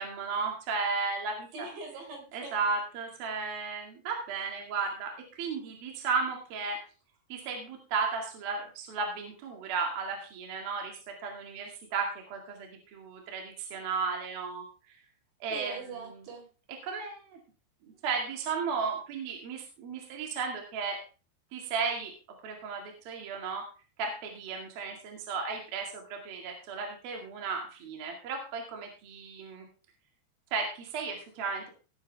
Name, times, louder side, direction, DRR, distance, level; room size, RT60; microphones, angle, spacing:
voice 1, 0.0-1.7 2.3-6.8 7.3-15.0 15.4-15.8 16.8-17.4 17.8-21.0 21.5-22.1 22.4-23.7 24.0-29.7 30.5-31.7, right 4 dB, 60° right, 2 dB, 3.8 m, -34 dB
voice 2, 1.5-2.5 15.5-16.5, right 4 dB, 75° right, 2 dB, 6.5 m, -42 dB
18.0 x 9.7 x 3.5 m, 0.35 s
omnidirectional pair, 5.3 m